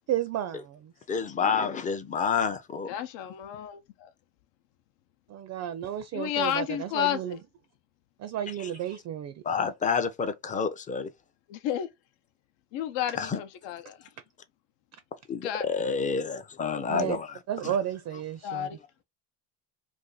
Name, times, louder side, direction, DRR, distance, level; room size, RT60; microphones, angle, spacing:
voice 1, 0.1-0.9 5.3-7.4 8.2-9.4 16.9-17.2 17.5-18.7, right 10 dB, 40° right, 0.4 m, -32 dB
voice 2, 1.1-2.9 9.4-11.1 13.2-13.4 15.3-17.3 17.6-17.7, left 6 dB, 20° left, 0.4 m, -28 dB
voice 3, 2.9-4.1 6.1-7.4 11.5-11.9 12.7-14.1 15.4-15.7 18.4-18.8, left 11 dB, 75° left, 0.8 m, -31 dB
2.6 x 2.5 x 3.8 m
cardioid pair, 120°, 44 cm